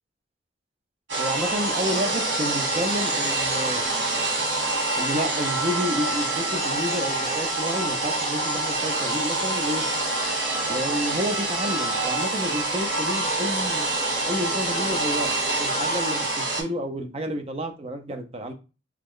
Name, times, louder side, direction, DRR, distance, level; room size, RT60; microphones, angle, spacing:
sound 1, 1.1-16.6, right 2 dB, 85° right, 1.4 m, -26 dB
voice 1, 1.2-3.9 5.0-9.9 10.7-14.0 14.3-15.3 15.6-18.5, equal, 35° right, 0.5 m, -30 dB
3.4 x 2.0 x 3.6 m
head